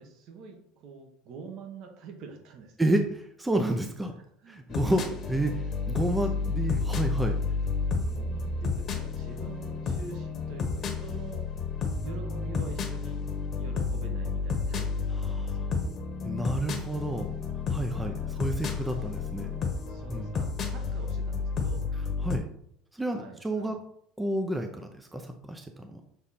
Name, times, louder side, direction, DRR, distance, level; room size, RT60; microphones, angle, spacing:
voice 1, 0.0-2.9 4.4-4.9 7.9-11.4 12.0-13.3 13.6-15.7 17.9-18.6 19.8-21.9 23.1-23.8, right 5 dB, 55° right, 3 dB, 1.4 m, -46 dB
voice 2, 2.8-4.1 4.5-7.4 15.2-15.6 16.2-17.3 17.7-19.5 20.1-20.3 22.2-22.5 22.9-23.8 24.2-26.0, right 1 dB, 10° right, 5 dB, 0.6 m, -30 dB
sound 1, 4.7-22.4, left 4 dB, 35° left, 1.2 m, -31 dB
7.0 x 3.7 x 4.3 m, 0.71 s
supercardioid pair, 130°, 0 cm